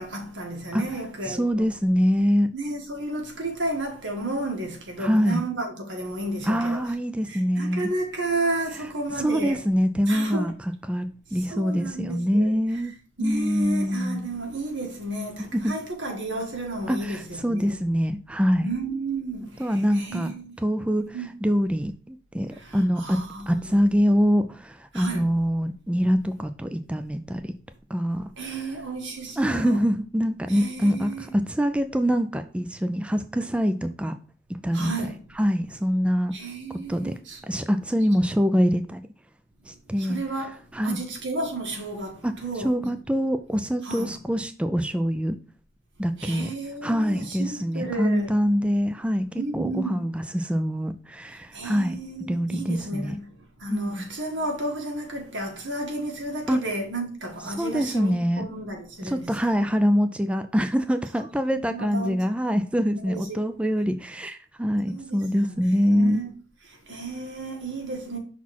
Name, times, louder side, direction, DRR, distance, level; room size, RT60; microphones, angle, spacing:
voice 1, 0.0-1.7 2.5-6.9 7.3-9.6 10.1-10.5 11.5-12.6 13.2-17.8 18.6-20.5 21.1-21.3 23.0-23.8 24.9-25.3 28.4-29.8 30.5-31.3 34.7-35.1 36.3-37.4 40.0-40.5 40.8-42.1 42.4-42.9 43.8-44.1 46.2-48.4 49.4-49.9 51.5-53.2 53.6-59.7 61.2-61.3 61.5-62.2 63.0-63.4 64.9-66.3 66.9-68.2, right 2 dB, 85° right, 1.8 m, -32 dB
voice 2, 1.3-2.5 5.0-5.4 6.5-7.9 9.1-10.5 10.9-12.9 13.2-14.2 15.5-15.7 16.9-18.7 19.6-23.2 23.5-27.5 27.9-28.6 29.4-34.1 34.5-34.9 35.4-36.3 36.9-37.1 37.4-39.0 39.7-40.2 40.7-41.0 42.2-42.3 42.6-45.4 46.0-46.5 46.8-52.0 52.3-53.1 53.7-54.0 56.5-56.6 57.6-58.4 59.0-66.2, equal, 5° right, 0.3 m, -24 dB
5.9 x 4.1 x 4.3 m
head